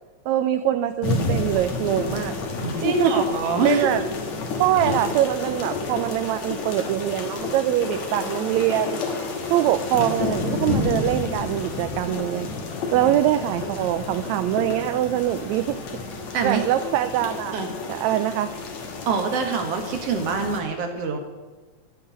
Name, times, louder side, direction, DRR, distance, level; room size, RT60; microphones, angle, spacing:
voice 1, 0.3-2.3 2.8-3.2 3.6-4.0 4.6-9.0 9.5-12.5 12.9-15.8 16.4-17.6 17.9-18.5, right 12 dB, 80° right, 10 dB, 1.8 m, -23 dB
sound 1, 1.0-20.6, left 3 dB, 70° left, 2.8 m, -30 dB
voice 2, 2.8-3.9 16.3-16.6 17.5-17.7 19.1-21.2, right 4 dB, 60° right, 4 dB, 2.5 m, -24 dB
sound 2, 7.9-18.4, left 4 dB, 85° left, 6.0 m, -43 dB
13.5 x 5.8 x 9.3 m, 1.2 s
omnidirectional pair, 3.3 m